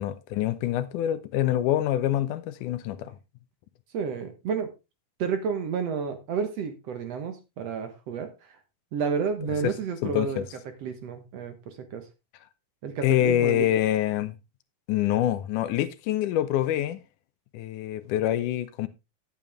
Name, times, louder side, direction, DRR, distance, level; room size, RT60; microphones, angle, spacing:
voice 1, 0.0-3.1 9.6-9.7 10.0-10.4 13.0-14.4 14.9-17.0 17.5-18.9, left 12 dB, 80° left, 2.2 m, -25 dB
voice 2, 3.9-4.7 5.2-8.6 8.9-10.5 10.8-12.1 12.8-13.7, right 6 dB, 60° right, 2.1 m, -31 dB
10.5 x 8.8 x 3.5 m
omnidirectional pair, 3.7 m